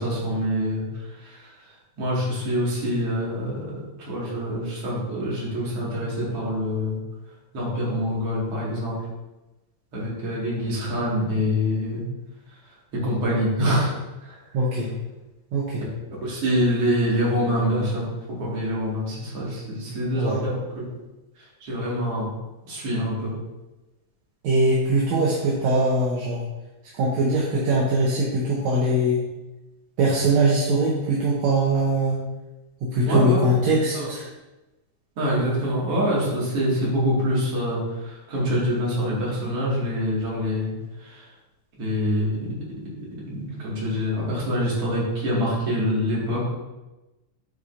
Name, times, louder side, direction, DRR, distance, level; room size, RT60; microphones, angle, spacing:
voice 1, 0.0-1.5 2.0-3.7 4.0-7.0 7.5-8.9 9.9-12.0 12.9-13.9 14.2-14.4 16.2-20.9 21.6-22.3 22.6-23.3 33.1-33.4 33.9-34.1 35.2-40.7 41.0-41.3 41.8-42.5 43.2-46.5, equal, 55° right, -7 dB, 2.9 m, -25 dB
voice 2, 14.5-14.9 15.5-15.9 20.2-20.4 24.4-26.4 26.9-29.2 30.0-32.2 32.8-34.3, right 1 dB, 75° right, -4 dB, 2.1 m, -21 dB
8.2 x 5.0 x 2.6 m, 1.0 s
omnidirectional pair, 3.3 m